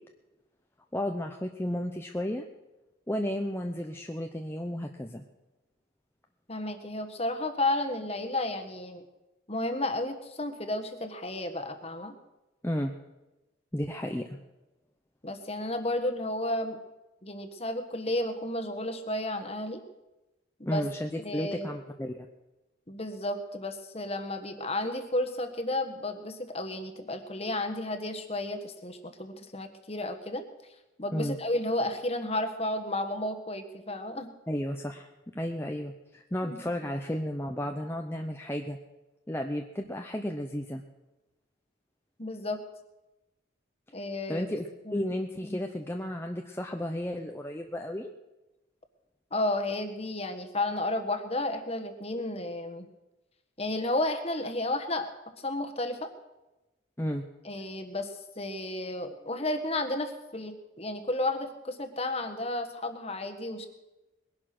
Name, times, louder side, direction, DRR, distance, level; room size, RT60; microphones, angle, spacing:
voice 1, 0.9-2.4 3.1-5.2 12.6-12.9 13.7-14.4 20.7-22.3 31.1-31.4 34.5-35.1 35.3-38.8 39.3-40.8 44.3-48.1 57.0-57.2, equal, 10° left, 3 dB, 0.7 m, -33 dB
voice 2, 6.5-9.0 9.5-12.2 15.2-16.8 17.2-19.8 20.6-20.8 21.2-21.7 22.9-30.4 31.0-34.3 36.4-36.6 42.2-42.6 43.9-44.6 44.8-45.0 49.3-52.9 53.6-55.1 55.4-56.1 57.4-63.7, left 1 dB, 30° left, 8 dB, 1.4 m, -32 dB
20.5 x 11.5 x 6.0 m, 1.0 s
head